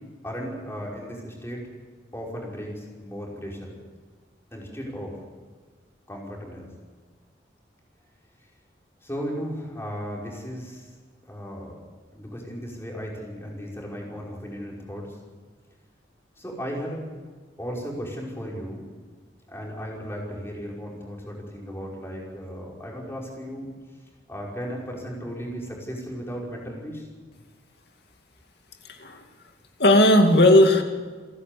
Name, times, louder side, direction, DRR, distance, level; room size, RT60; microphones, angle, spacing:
voice 1, 0.2-1.6 2.1-3.7 4.5-5.1 6.1-6.7 9.0-10.9 11.3-11.8 12.1-15.2 16.4-17.0 17.6-18.9 19.5-23.7 24.3-27.1, equal, 15° left, -3 dB, 5.3 m, -35 dB
voice 2, 28.9-29.2 29.8-30.8, left 1 dB, 60° left, 4 dB, 2.4 m, -16 dB
29.0 x 11.5 x 8.6 m, 1.5 s
head